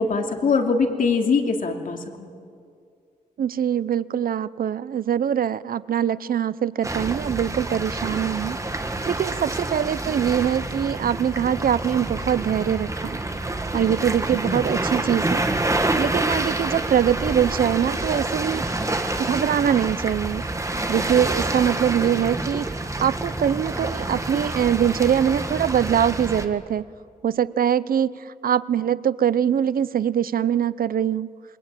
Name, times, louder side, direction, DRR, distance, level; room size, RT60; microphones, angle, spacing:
voice 1, 0.0-2.3, left 4 dB, 70° left, 3 dB, 2.9 m, -22 dB
voice 2, 3.4-13.2 13.7-15.5 15.9-20.4 20.9-22.7 23.0-26.9 27.2-31.3, right 9 dB, 80° right, 17 dB, 0.7 m, -23 dB
sound 1, 6.8-26.5, right 2 dB, 20° right, 1.8 m, -27 dB
27.5 x 23.0 x 9.1 m, 2.3 s
wide cardioid pair, 115°, 15 cm